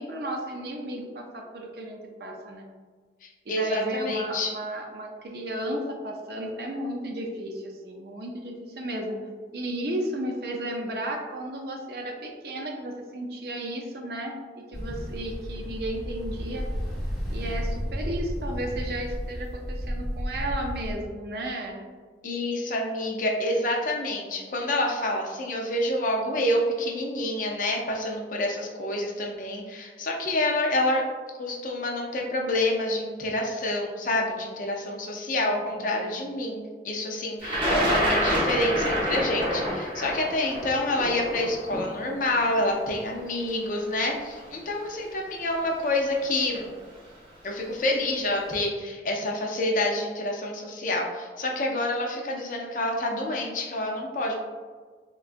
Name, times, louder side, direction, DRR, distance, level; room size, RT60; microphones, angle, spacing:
voice 1, 0.0-2.7 3.5-9.2 9.5-16.7 17.3-21.8 35.4-36.2, right 1 dB, 60° right, 1 dB, 0.5 m, -34 dB
voice 2, 3.2-4.5 22.2-31.0 31.4-46.7 47.4-54.4, left 1 dB, 45° left, 0 dB, 0.5 m, -28 dB
Ocean, 14.7-21.0, equal, ahead, 0.8 m, -32 dB
Thunder, 37.4-43.4 44.4-44.5 45.6-45.8 46.1-46.6, equal, 30° right, 0.8 m, -27 dB
3.7 x 2.2 x 2.4 m, 1.5 s
head